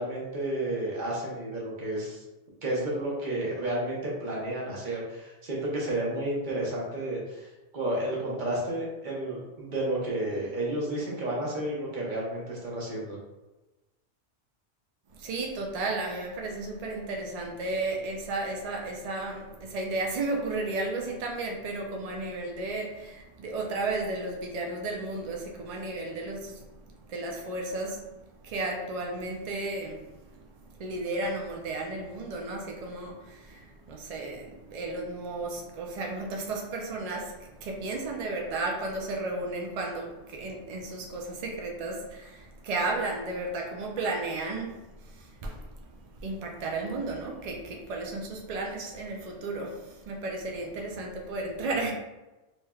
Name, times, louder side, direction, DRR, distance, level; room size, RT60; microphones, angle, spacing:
voice 1, 0.0-2.2 2.6-7.5 7.7-13.2, right 1 dB, 45° right, -4 dB, 0.9 m, -31 dB
voice 2, 15.1-26.6 27.1-28.1 28.4-45.6 46.2-51.9, right 2 dB, 70° right, 0 dB, 0.3 m, -34 dB
3.1 x 3.0 x 2.3 m, 1.1 s
omnidirectional pair, 1.2 m